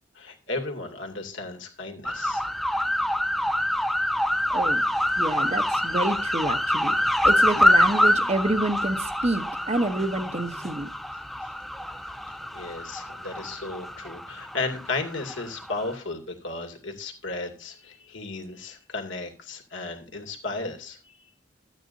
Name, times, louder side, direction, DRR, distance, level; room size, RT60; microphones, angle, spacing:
voice 1, 0.1-2.4 11.4-11.5 12.5-21.2, left 3 dB, 85° left, 2 dB, 2.4 m, -34 dB
sound 1, 2.0-15.9, left 1 dB, ahead, 0.4 m, -25 dB
voice 2, 5.2-10.9, right 2 dB, 35° right, 9 dB, 0.9 m, -28 dB
13.5 x 9.3 x 2.6 m, 0.37 s
head